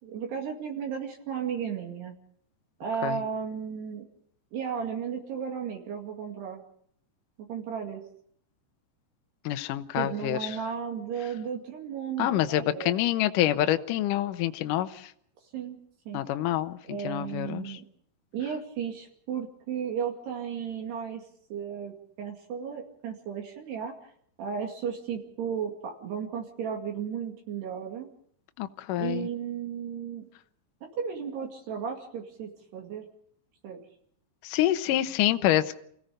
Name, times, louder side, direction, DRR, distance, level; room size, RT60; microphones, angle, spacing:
voice 1, 0.0-2.1 2.8-4.1 4.5-6.7 7.5-8.0 9.9-13.0 15.5-15.8 16.1-16.2 16.9-17.8 18.3-21.2 21.5-23.9 24.4-28.1 29.0-30.2 30.9-33.0 33.6-33.8 34.9-35.4, right 7 dB, 65° right, 1 dB, 4.3 m, -34 dB
voice 2, 9.5-10.5 12.2-15.1 16.1-17.8 28.6-29.3 34.4-35.8, left 13 dB, 80° left, 9 dB, 1.9 m, -27 dB
29.0 x 17.5 x 5.2 m, 0.64 s
omnidirectional pair, 5.2 m